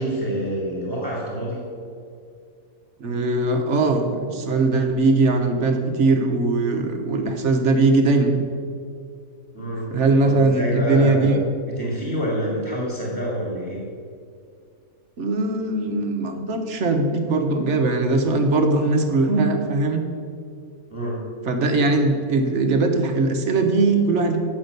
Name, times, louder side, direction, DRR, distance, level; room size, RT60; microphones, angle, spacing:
voice 1, 0.0-1.7 9.5-9.9 10.2-11.4 11.8-13.8 20.9-21.3, equal, 15° right, -5 dB, 1.9 m, -27 dB
voice 2, 3.0-8.4 9.6-11.4 15.2-20.0 21.5-24.4, right 3 dB, 55° right, 4 dB, 1.1 m, -20 dB
7.6 x 6.0 x 6.5 m, 2.3 s
omnidirectional pair, 1.6 m